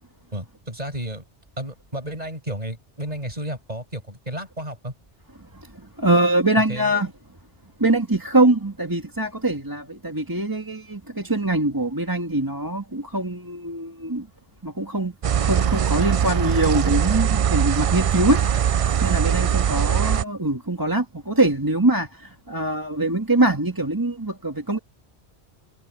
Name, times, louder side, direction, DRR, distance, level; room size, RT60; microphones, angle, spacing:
voice 1, 0.3-1.2 1.6-4.9 6.6-6.9 19.8-20.0, right 1 dB, 35° right, 6.6 m, -32 dB
voice 2, 6.0-7.1 7.8-14.2 14.6-15.1 15.4-18.7 19.0-22.1 22.5-24.8, right 2 dB, 20° right, 1.9 m, -23 dB
sound 1, 15.2-20.2, right 8 dB, 55° right, 0.3 m, -21 dB
omnidirectional pair, 1.2 m